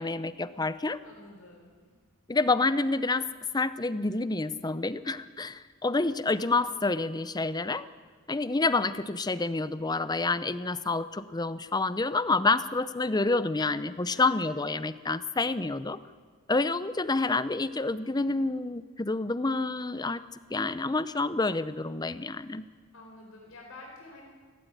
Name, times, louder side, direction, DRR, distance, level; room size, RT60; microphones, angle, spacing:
voice 1, 0.0-1.0 2.3-3.3 3.5-7.9 8.3-16.0 16.5-20.2 20.5-22.7, left 3 dB, 20° left, 14 dB, 0.6 m, -28 dB
voice 2, 1.0-2.0 14.1-14.4 22.9-24.3, left 2 dB, 70° left, -1 dB, 4.4 m, -49 dB
17.0 x 16.5 x 9.4 m, 1.5 s
head